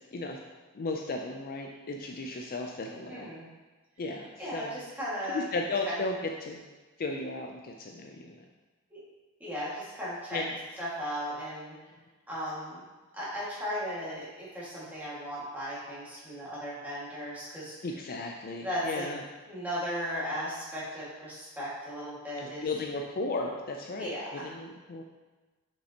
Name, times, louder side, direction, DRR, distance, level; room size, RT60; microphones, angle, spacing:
voice 1, 0.7-3.3 4.0-4.8 5.3-6.1 6.4-6.6 7.0-8.2 10.3-10.5 17.8-19.2 22.4-24.1 24.4-25.0, left 3 dB, 40° left, 2 dB, 0.4 m, -35 dB
voice 2, 3.1-3.5 4.4-5.5 5.8-5.9 8.9-9.0 9.4-10.4 10.8-11.8 12.3-12.9 13.1-18.0 18.6-19.1 19.5-22.7 24.0-24.5, equal, 10° right, -9 dB, 1.9 m, -36 dB
6.5 x 5.2 x 2.9 m, 1.3 s
head